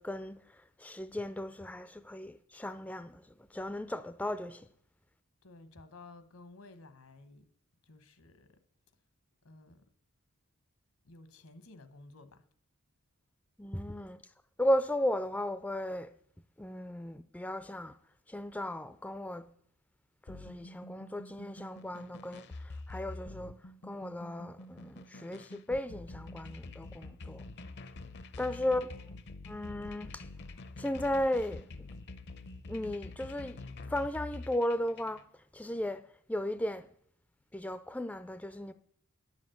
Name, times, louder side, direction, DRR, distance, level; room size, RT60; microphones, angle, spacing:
voice 1, 0.0-3.2 3.5-4.7 13.6-14.2 14.6-16.1 16.6-17.9 18.3-19.5 20.3-23.6 23.8-27.4 28.4-28.9 29.5-30.3 30.8-31.7 32.7-33.6 33.9-35.2 35.5-36.0 36.3-36.9 37.5-38.7, left 1 dB, 5° left, 0.4 m, -35 dB
voice 2, 5.4-7.4 7.9-8.6 9.4-9.9 11.0-12.4 28.4-29.1, left 2 dB, 85° left, 1.2 m, -54 dB
sound 1, 20.3-35.2, left 2 dB, 55° left, 0.6 m, -46 dB
10.0 x 7.3 x 7.8 m
head